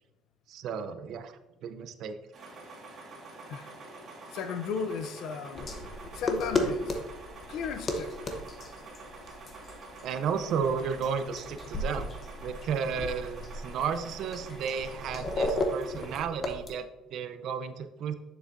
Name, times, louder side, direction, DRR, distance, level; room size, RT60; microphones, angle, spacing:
voice 1, 0.5-2.2 10.0-12.1 12.4-18.1, right 6 dB, 50° right, 0.5 m, -33 dB
sound 1, 2.3-16.2, right 2 dB, 35° right, 1.7 m, -47 dB
voice 2, 4.3-5.7 6.1-7.0 7.5-8.1, left 6 dB, 60° left, 0.4 m, -35 dB
sound 2, 5.5-16.7, left 2 dB, 25° left, 0.7 m, -35 dB
7.0 x 6.8 x 2.5 m
cardioid pair, 170°, 0 cm